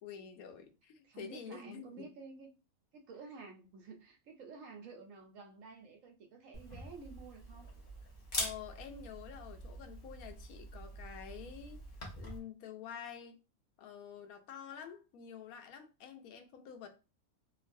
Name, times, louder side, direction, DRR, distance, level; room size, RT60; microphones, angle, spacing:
voice 1, 0.0-2.1 8.3-11.8 12.2-13.4 13.8-16.9, left 8 dB, 80° left, 1.0 m, -48 dB
voice 2, 1.0-2.5 2.9-7.7, right 4 dB, 70° right, 1.0 m, -51 dB
Camera, 6.5-12.4, left 1 dB, 35° left, 0.8 m, -44 dB
3.0 x 2.4 x 2.5 m
omnidirectional pair, 1.5 m